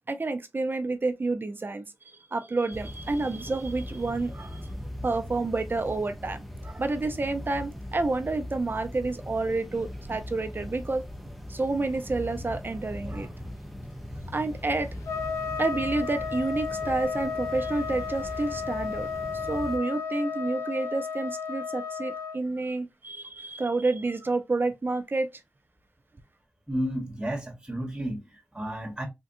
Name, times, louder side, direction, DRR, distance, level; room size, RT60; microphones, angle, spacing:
voice 1, 0.1-4.7 5.0-11.1 11.5-13.3 14.3-14.9 15.6-25.4, right 3 dB, 50° right, 0.6 m, -29 dB
sound 1, 2.7-19.8, left 1 dB, ahead, 0.7 m, -40 dB
Trumpet, 15.1-22.4, left 5 dB, 85° left, 0.5 m, -33 dB
voice 2, 26.7-29.0, equal, 15° right, 1.2 m, -32 dB
3.7 x 2.3 x 2.7 m
cardioid pair, 40°, 5 cm